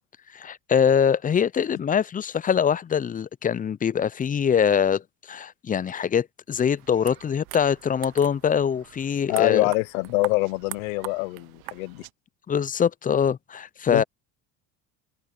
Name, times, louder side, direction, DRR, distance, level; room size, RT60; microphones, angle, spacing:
voice 1, 0.3-9.7 12.5-14.0, left 7 dB, 20° left, 0.5 m, -23 dB
sound 1, 6.8-12.1, right 20 dB, 60° right, 0.9 m, -42 dB
voice 2, 9.3-12.0 13.9-14.0, left 25 dB, 80° left, 0.9 m, -25 dB
open air
supercardioid pair, 80°, 40 cm